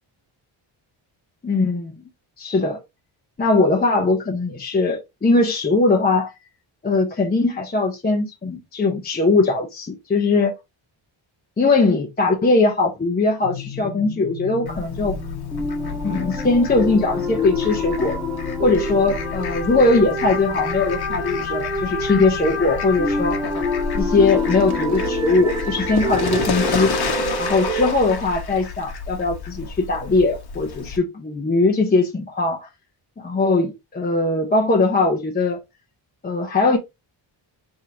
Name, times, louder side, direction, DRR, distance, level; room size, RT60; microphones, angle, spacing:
voice 1, 1.4-2.0 2.4-2.8 3.4-6.3 6.8-10.5 11.6-15.2 16.0-18.2 18.6-23.4 23.9-27.0 27.4-32.7 33.2-35.6 36.2-36.8, left 3 dB, 20° left, 0.6 m, -20 dB
sound 1, 13.4-27.9, left 2 dB, 5° right, 1.3 m, -27 dB
Fowl, 14.7-31.0, left 5 dB, 50° left, 1.0 m, -30 dB
4.7 x 3.6 x 2.7 m
wide cardioid pair, 170°, 48 cm